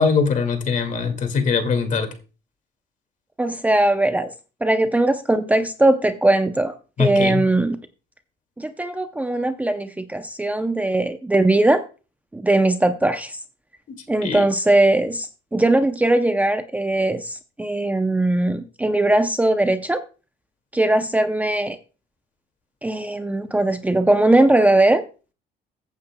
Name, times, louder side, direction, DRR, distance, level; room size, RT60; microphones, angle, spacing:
voice 1, 0.0-2.1 7.0-7.4 13.9-14.0 14.2-14.4, left 5 dB, 50° left, 2.1 m, -21 dB
voice 2, 3.4-4.3 4.6-7.8 8.6-11.8 12.3-13.4 14.1-20.0 20.7-21.8 22.8-25.0, right 2 dB, 10° right, 0.6 m, -20 dB
15.0 x 8.6 x 2.2 m
cardioid pair, 110°, 17 cm